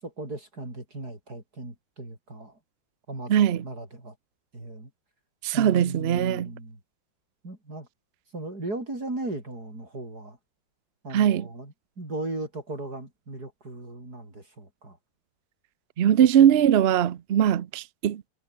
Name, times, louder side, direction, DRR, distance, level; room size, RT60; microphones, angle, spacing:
voice 1, 0.0-2.6 3.1-4.2 4.5-4.9 5.5-6.8 7.4-7.9 8.3-10.4 11.0-15.0 16.4-16.5, right 2 dB, 50° right, 7.7 m, -37 dB
voice 2, 3.3-3.6 5.4-6.5 11.1-11.5 16.0-18.3, right 9 dB, 75° right, 0.5 m, -21 dB
omnidirectional pair, 2.1 m